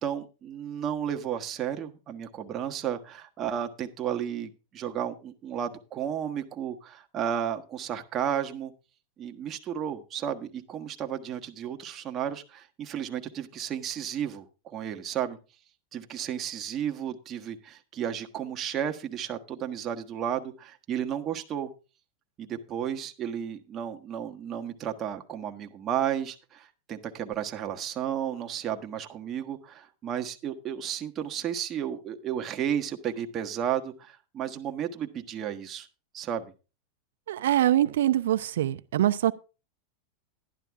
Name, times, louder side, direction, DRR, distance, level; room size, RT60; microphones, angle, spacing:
voice 1, 0.0-8.7 9.2-15.4 15.9-21.7 22.4-35.9 36.1-36.5, right 9 dB, 30° right, 1.3 m, -33 dB
voice 2, 37.3-39.3, right 12 dB, 80° right, 0.7 m, -24 dB
11.5 x 11.0 x 3.6 m
supercardioid pair, 125°, 0 cm